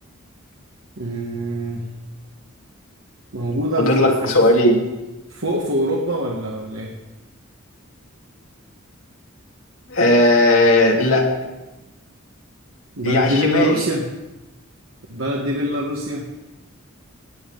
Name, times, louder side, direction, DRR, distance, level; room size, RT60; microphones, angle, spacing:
voice 1, 1.0-1.9 3.3-4.3 5.3-6.9 13.0-14.1 15.1-16.3, equal, 75° right, -1 dB, 1.5 m, -24 dB
voice 2, 3.8-4.8 9.9-11.3 13.0-13.8, left 1 dB, 75° left, -1 dB, 3.1 m, -16 dB
18.0 x 9.6 x 5.3 m, 1.1 s
head